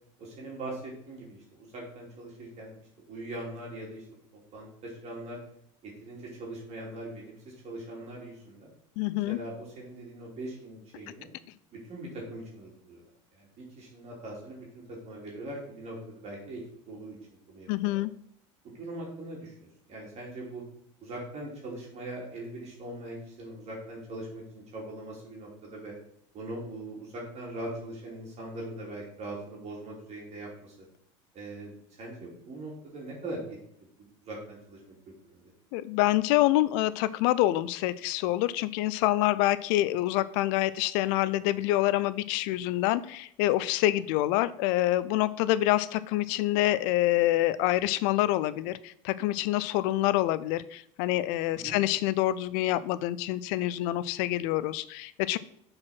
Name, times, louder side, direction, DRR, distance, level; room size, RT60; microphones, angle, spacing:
voice 1, 0.2-2.7 3.1-4.0 4.5-5.4 5.8-8.7 9.3-11.3 11.7-13.0 13.3-17.2 17.5-18.0 18.6-20.6 21.0-24.4 24.7-25.9 26.3-30.7 31.3-31.7 32.0-33.6 34.0-35.4 51.5-51.8, right 1 dB, 45° right, -2 dB, 2.9 m, -41 dB
voice 2, 9.0-9.4 17.7-18.1 35.7-55.4, left 15 dB, 70° left, 17 dB, 0.5 m, -26 dB
6.2 x 4.8 x 5.8 m, 0.70 s
supercardioid pair, 100°, 16 cm